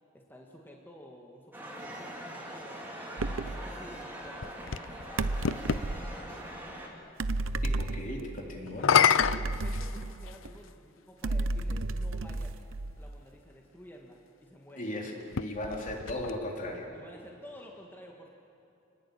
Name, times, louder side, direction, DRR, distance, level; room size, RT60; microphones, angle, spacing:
voice 1, 0.1-2.8 3.4-4.6 5.1-6.5 9.2-12.6 12.9-14.9 16.9-18.3, equal, 10° left, -1 dB, 1.9 m, -51 dB
sound 1, 1.5-6.9, right 1 dB, 10° right, 4.0 m, -42 dB
sound 2, 3.2-3.7 5.2-6.1 7.2-8.4 9.2-10.6 11.2-13.1, right 2 dB, 90° right, 0.8 m, -32 dB
sound 3, 4.0-5.9 8.7-10.5 11.4-11.5 15.2-16.8, left 7 dB, 80° left, 0.7 m, -28 dB
voice 2, 7.6-8.9 14.8-16.9, left 1 dB, 40° left, 0 dB, 3.8 m, -37 dB
29.0 x 20.5 x 8.7 m, 2.7 s
head